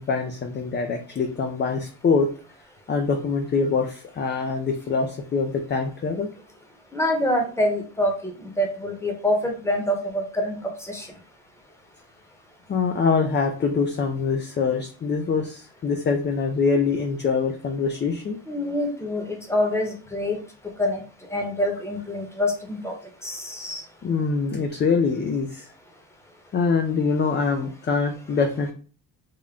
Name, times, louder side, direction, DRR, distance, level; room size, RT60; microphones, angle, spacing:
voice 1, 0.0-2.3 2.9-6.3 12.7-18.4 24.0-25.7 26.5-28.7, left 5 dB, 30° left, 4 dB, 0.4 m, -24 dB
voice 2, 6.9-11.1 18.5-20.4 20.8-21.0 21.3-22.9 23.2-23.8, left 1 dB, 5° left, 2 dB, 1.0 m, -26 dB
3.7 x 2.1 x 3.6 m, 0.39 s
cardioid pair, 100°, 40 cm